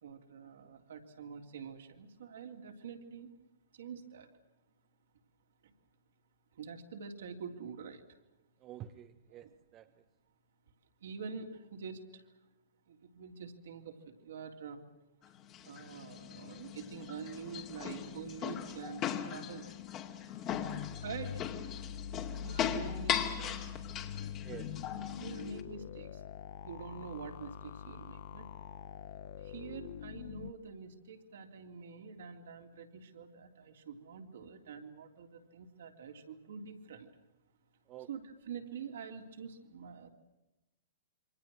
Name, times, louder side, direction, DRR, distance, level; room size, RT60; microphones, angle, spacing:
voice 1, 0.0-3.3 3.7-4.3 6.6-8.0 9.3-9.5 11.0-12.2 12.9-14.8 15.6-19.7 21.0-21.4 22.4-23.7 25.1-26.1 26.6-28.5 29.4-37.1 38.1-40.1, right 6 dB, 65° right, 3 dB, 3.4 m, -46 dB
voice 2, 8.6-10.0 20.7-20.9 24.4-24.8 37.9-38.1, right 11 dB, 30° right, 9 dB, 0.9 m, -49 dB
sound 1, 15.2-25.6, left 9 dB, 30° left, 2.4 m, -39 dB
sound 2, 20.5-30.5, left 8 dB, 55° left, 0.9 m, -44 dB
28.0 x 24.5 x 6.3 m, 1.0 s
figure-of-eight pair, 115°, 0 cm